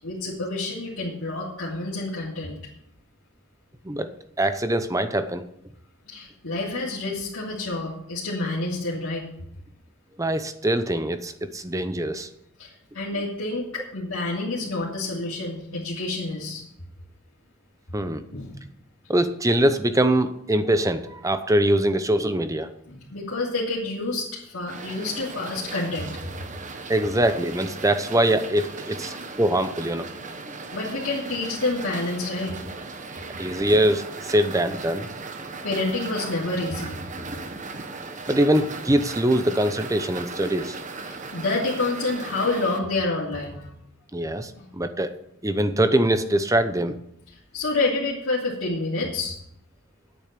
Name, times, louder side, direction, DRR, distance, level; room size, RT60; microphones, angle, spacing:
voice 1, 0.0-2.6 6.1-9.3 12.6-16.6 18.3-18.6 22.9-26.2 29.1-29.2 30.7-32.7 35.6-37.0 41.1-43.7 44.6-44.7 47.5-49.3, left 2 dB, 75° left, -7 dB, 2.9 m, -28 dB
voice 2, 4.4-5.4 10.2-12.3 17.9-18.2 19.1-22.7 26.9-30.1 33.4-35.1 38.3-40.8 44.1-45.1 45.4-47.0, right 1 dB, 15° right, 10 dB, 0.8 m, -23 dB
sound 1, 24.7-42.8, right 3 dB, 35° right, 1.1 m, -37 dB
10.0 x 9.0 x 6.7 m, 0.73 s
head